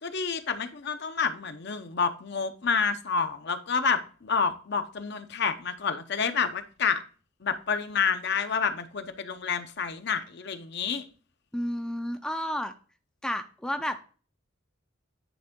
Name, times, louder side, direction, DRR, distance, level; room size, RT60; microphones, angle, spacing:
voice 1, 0.0-7.0 7.4-11.1, left 5 dB, 60° left, 9 dB, 0.7 m, -29 dB
voice 2, 11.5-12.7 13.2-14.0, equal, 5° left, 7 dB, 0.4 m, -31 dB
9.3 x 3.5 x 3.6 m, 0.38 s
head